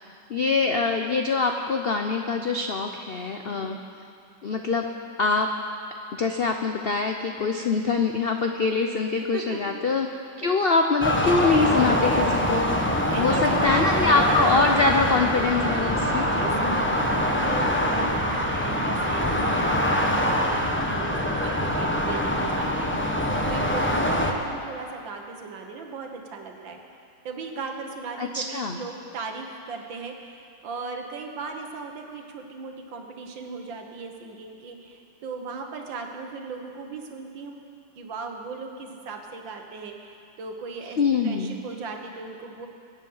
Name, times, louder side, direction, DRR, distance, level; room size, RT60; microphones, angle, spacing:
voice 1, 0.3-3.8 4.4-4.9 5.2-5.5 6.2-10.1 10.4-12.8 13.2-16.3 28.2-28.8 41.0-41.5, left 4 dB, 80° left, 4 dB, 0.5 m, -24 dB
voice 2, 3.5-3.8 9.3-9.8 13.1-14.3 15.9-26.8 27.2-37.5 38.0-41.0 41.2-42.7, right 4 dB, 90° right, 3 dB, 2.1 m, -37 dB
sound 1, 11.0-24.3, equal, 10° left, 0.7 m, -24 dB
sound 2, 13.7-15.5, right 3 dB, 55° right, 1.9 m, -36 dB
24.0 x 8.3 x 5.6 m, 2.5 s
omnidirectional pair, 2.0 m